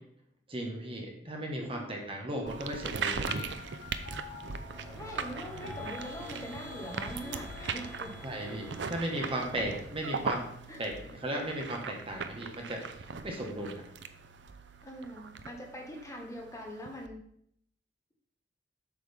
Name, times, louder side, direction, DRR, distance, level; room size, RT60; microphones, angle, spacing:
voice 1, 0.5-3.5 8.2-10.5 10.8-13.8, right 1 dB, 30° right, 1 dB, 1.3 m, -36 dB
voice 2, 1.5-1.9 4.9-8.1 9.2-9.3 10.7-10.8 14.8-17.2, equal, 15° left, 0 dB, 1.3 m, -43 dB
sound 1, 2.4-11.3, left 6 dB, 50° left, 0.9 m, -50 dB
sound 2, 2.5-17.1, right 5 dB, 75° right, 0.5 m, -40 dB
sound 3, 4.1-9.7, right 1 dB, 10° right, 1.2 m, -49 dB
8.3 x 6.2 x 3.5 m, 0.68 s
head